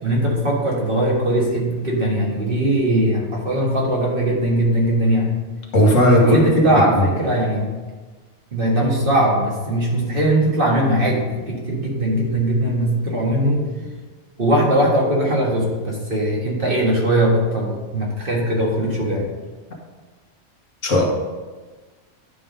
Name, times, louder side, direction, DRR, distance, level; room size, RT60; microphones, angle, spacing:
voice 1, 0.0-5.3 6.2-7.7 8.5-13.6 14.4-19.3, right 1 dB, 45° right, -3 dB, 1.8 m, -20 dB
voice 2, 5.7-6.4 6.9-7.1 20.8-21.0, left 1 dB, 85° left, 0 dB, 1.7 m, -15 dB
11.0 x 3.7 x 5.2 m, 1.3 s
omnidirectional pair, 1.3 m